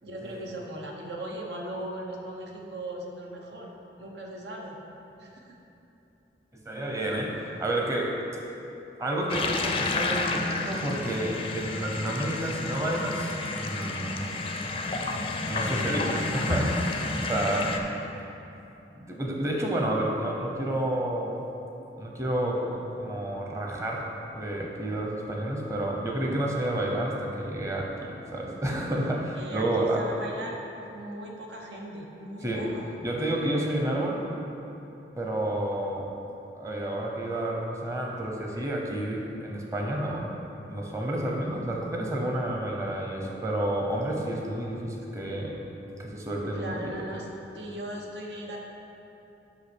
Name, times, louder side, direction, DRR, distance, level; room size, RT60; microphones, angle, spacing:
voice 1, 0.0-3.7 4.0-4.7 5.2-5.5 7.0-7.2 17.1-17.2 29.3-30.6 30.9-32.9 46.5-47.3 47.5-48.6, right 1 dB, 75° right, 0 dB, 1.0 m, -38 dB
voice 2, 6.5-8.1 9.0-14.3 15.4-17.8 18.9-21.3 22.0-30.1 32.4-32.6 33.0-34.2 35.2-36.1 36.6-40.3 40.6-45.6 46.0-46.9, right 1 dB, 15° right, -1 dB, 0.8 m, -30 dB
sound 1, 9.3-17.8, left 3 dB, 30° left, 0.4 m, -30 dB
5.9 x 5.4 x 6.1 m, 3.0 s
head